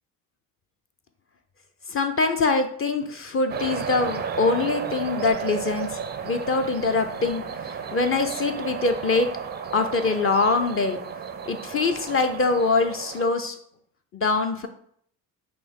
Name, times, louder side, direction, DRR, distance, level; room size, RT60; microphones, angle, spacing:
voice 1, 1.9-7.4 7.9-9.3 9.7-11.0 11.5-13.5 14.1-14.7, left 3 dB, 30° left, 6 dB, 0.5 m, -24 dB
sound 1, 3.5-13.3, right 7 dB, 25° right, 0.4 m, -33 dB
5.8 x 2.1 x 3.5 m, 0.65 s
hypercardioid pair, 60°, 46 cm